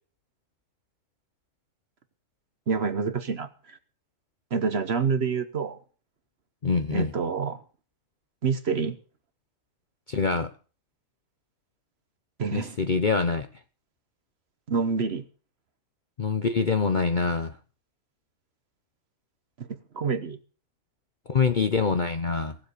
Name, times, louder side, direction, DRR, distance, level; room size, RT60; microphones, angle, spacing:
voice 1, 2.7-3.8 4.5-5.8 6.9-7.6 8.4-9.0 12.4-12.8 14.7-15.2 19.6-20.4, right 5 dB, 45° right, 12 dB, 1.1 m, -27 dB
voice 2, 6.6-7.1 10.1-10.5 12.5-13.5 16.2-17.6 21.3-22.6, left 4 dB, 45° left, 9 dB, 0.7 m, -25 dB
18.0 x 7.6 x 6.6 m, 0.39 s
omnidirectional pair, 1.7 m